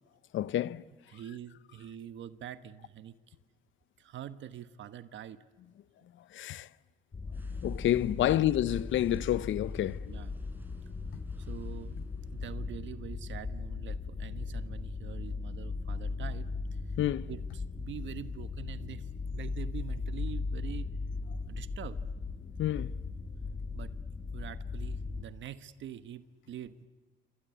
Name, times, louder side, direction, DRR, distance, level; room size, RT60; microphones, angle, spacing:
voice 1, 0.3-0.9 6.3-6.7 7.6-10.2 17.0-17.3 22.6-23.0, left 13 dB, 75° left, 0.8 m, -29 dB
voice 2, 1.1-3.3 4.0-5.4 8.2-8.5 10.1-10.3 11.4-12.0 12.3-17.0 17.3-20.9 21.4-22.0 23.7-24.0 24.3-26.9, right 10 dB, 70° right, 1.3 m, -45 dB
sound 1, 7.1-25.2, left 4 dB, 35° left, 1.8 m, -38 dB
sound 2, 7.3-13.1, right 1 dB, 10° right, 4.7 m, -54 dB
27.0 x 25.0 x 8.4 m
cardioid pair, 90°, 20 cm